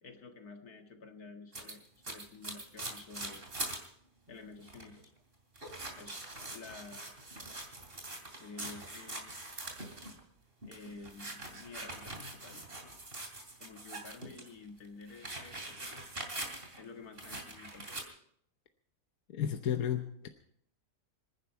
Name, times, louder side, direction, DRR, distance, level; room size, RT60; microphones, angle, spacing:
voice 1, 0.0-3.4 4.3-5.1 6.0-6.2 6.5-7.1 8.4-9.4 10.6-12.7 13.6-16.1 16.8-18.0, left 4 dB, 90° left, 5 dB, 2.3 m, -50 dB
sound 1, 1.5-3.9 4.3-4.4 4.6-5.1 5.6-10.2 10.6-14.5 14.9-16.9 17.2-18.0, right 2 dB, 40° right, 3.0 m, -43 dB
voice 2, 19.3-20.3, left 9 dB, 70° left, 6 dB, 1.4 m, -33 dB
26.0 x 10.5 x 4.5 m, 0.67 s
omnidirectional pair, 1.6 m